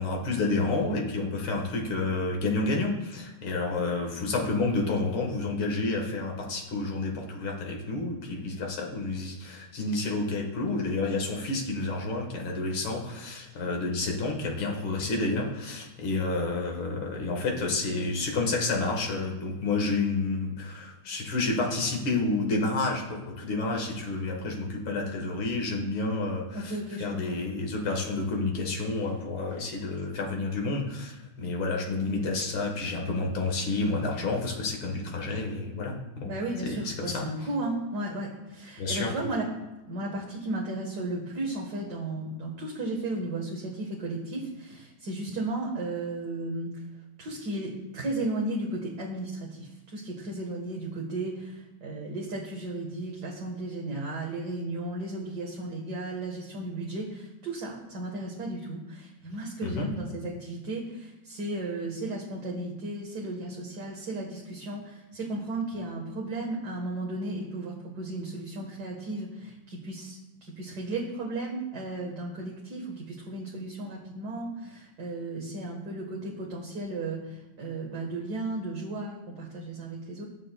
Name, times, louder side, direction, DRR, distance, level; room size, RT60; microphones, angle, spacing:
voice 1, 0.0-36.3 36.6-37.3 38.8-39.1 59.6-59.9, left 3 dB, 85° left, 1 dB, 2.3 m, -30 dB
voice 2, 26.5-27.4 36.2-39.5 39.9-46.7 47.2-80.2, right 2 dB, 55° right, -2 dB, 1.8 m, -34 dB
20.0 x 7.4 x 2.2 m, 1.0 s
omnidirectional pair, 2.2 m